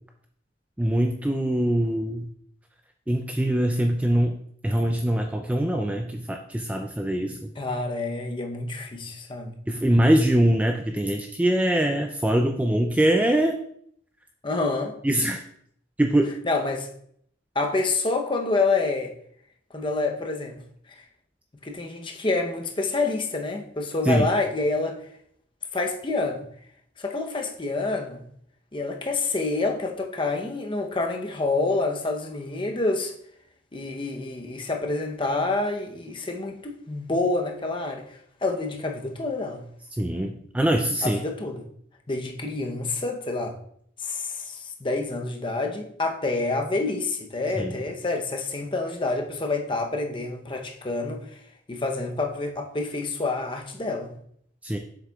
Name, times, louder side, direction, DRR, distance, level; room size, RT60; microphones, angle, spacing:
voice 1, 0.8-2.3 3.1-4.4 4.6-7.5 9.7-13.6 15.0-15.4 16.0-16.3 24.1-24.3 40.0-41.2 47.6-47.7 54.6-54.8, right 1 dB, 5° right, 0.3 m, -23 dB
voice 2, 7.6-9.5 14.4-14.9 16.4-16.9 17.5-19.1 19.7-20.6 21.6-25.0 25.7-26.4 27.0-28.2 28.7-33.1 33.7-39.6 41.0-41.6 42.1-43.6 44.0-51.4 51.7-54.1, left 3 dB, 25° left, 0.7 m, -27 dB
7.5 x 6.4 x 2.3 m
head